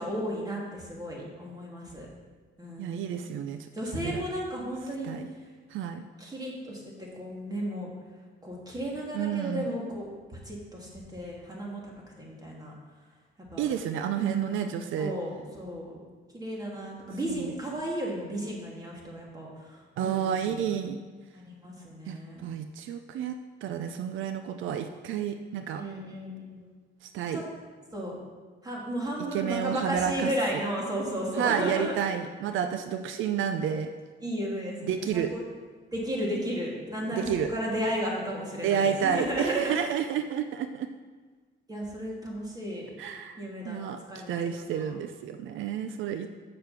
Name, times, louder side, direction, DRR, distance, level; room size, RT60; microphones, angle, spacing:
voice 1, 0.0-2.1 2.6-3.0 3.7-5.2 6.2-7.9 8.4-10.1 10.4-12.7 13.5-13.7 14.2-14.7 15.0-16.0 16.3-20.7 21.3-22.4 25.7-26.7 27.3-27.4 27.9-28.2 28.6-31.9 34.2-35.4 35.9-39.8 41.7-42.9 43.4-44.9, equal, 20° right, -3 dB, 2.8 m, -34 dB
voice 2, 2.8-4.2 5.0-5.3 5.7-6.0 9.1-9.6 13.6-15.1 17.3-17.5 20.0-21.0 22.1-23.3 23.6-25.8 27.0-27.4 29.3-30.3 31.4-33.9 34.8-35.3 37.1-37.5 38.6-40.9 43.0-44.0 44.3-46.3, right 8 dB, 80° right, 8 dB, 0.5 m, -30 dB
7.6 x 6.8 x 5.8 m, 1.4 s
cardioid pair, 90°, 20 cm